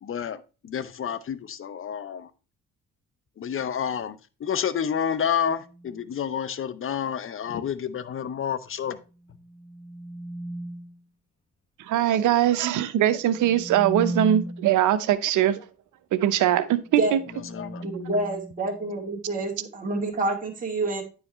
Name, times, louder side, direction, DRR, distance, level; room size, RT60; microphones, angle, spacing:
voice 1, 0.0-2.3 3.4-9.0 17.5-17.8, left 8 dB, 45° left, 0.7 m, -29 dB
sound 1, 5.6-6.1 9.2-11.0 13.2-14.8 16.8-19.2, right 1 dB, 20° left, 1.4 m, -37 dB
voice 2, 11.8-15.6 16.1-17.2, right 11 dB, 80° right, 0.8 m, -22 dB
voice 3, 17.8-21.0, right 2 dB, 25° right, 2.3 m, -27 dB
9.7 x 4.8 x 3.1 m
cardioid pair, 90°, 30 cm